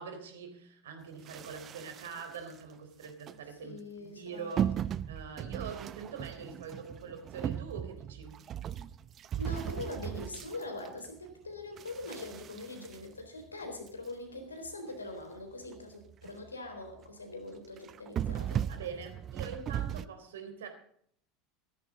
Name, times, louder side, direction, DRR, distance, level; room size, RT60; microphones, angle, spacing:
voice 1, 0.0-4.7 5.1-8.4 18.7-20.7, right 6 dB, 70° right, 6 dB, 3.6 m, -44 dB
sound 1, 1.3-2.5 3.0-3.3 4.6-11.3 11.8-13.9 14.4-14.5 14.7-14.8 15.2-15.3 15.6-15.8 16.1-16.5 16.9-17.1 17.8-20.0, right 10 dB, 35° right, 0.7 m, -37 dB
voice 2, 3.6-4.6 9.4-18.6, left 2 dB, 85° left, 4 dB, 4.1 m, -42 dB
16.5 x 14.0 x 4.0 m, 0.64 s
figure-of-eight pair, 80°, 0 cm